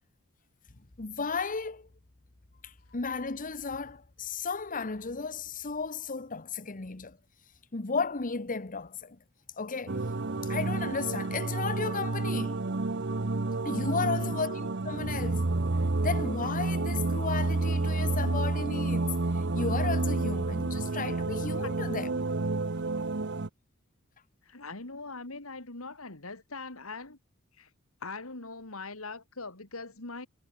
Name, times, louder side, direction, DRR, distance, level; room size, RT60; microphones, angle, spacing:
voice 1, 1.0-1.9 2.6-7.2 7.7-9.2 9.6-10.1 10.4-12.6 13.6-15.5 16.0-22.2, left 4 dB, 40° left, 1.1 m, -34 dB
sound 1, 9.9-23.5, right 2 dB, 55° right, 1.0 m, -30 dB
voice 2, 14.0-14.4 21.6-21.7 24.4-27.2 27.6-27.7 28.0-30.3, left 3 dB, 75° left, 3.0 m, -41 dB
head